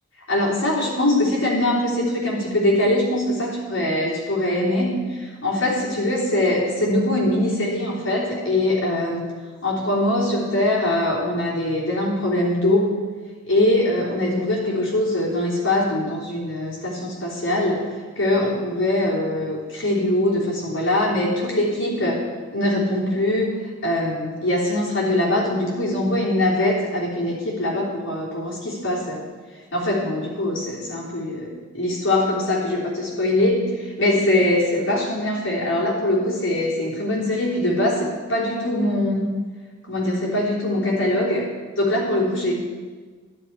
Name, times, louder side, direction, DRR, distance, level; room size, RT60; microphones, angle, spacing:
voice 1, 0.3-9.3 9.6-13.0 13.4-17.8 18.1-23.5 23.8-29.2 29.7-39.3 39.9-41.5 41.8-42.5, left 1 dB, 75° left, -6 dB, 3.4 m, -22 dB
12.0 x 11.5 x 4.7 m, 1.4 s
head